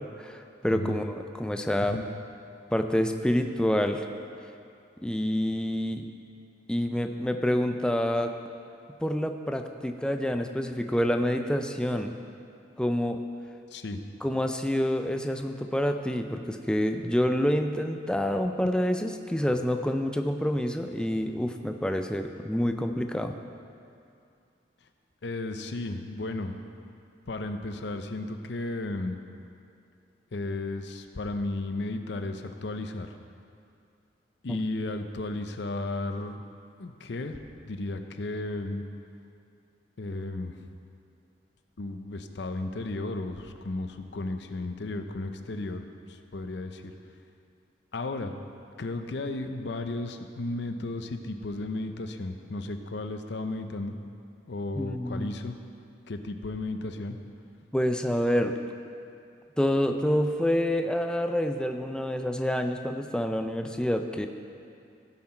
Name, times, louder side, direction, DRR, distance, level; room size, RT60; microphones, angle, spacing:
voice 1, 0.0-2.0 2.7-4.1 5.0-6.1 6.7-8.3 9.0-12.2 12.8-13.2 14.2-23.4 34.5-34.6 54.8-55.3 57.7-58.6 59.6-64.3, equal, 5° left, 6 dB, 0.4 m, -27 dB
voice 2, 25.2-26.9 27.3-29.2 30.3-33.1 34.4-36.4 36.8-37.4 37.6-38.8 40.0-40.6 41.8-46.9 47.9-48.3 48.8-54.0 54.5-55.5 56.1-57.2, left 2 dB, 65° left, 7 dB, 0.6 m, -34 dB
16.0 x 5.8 x 4.4 m, 2.5 s
head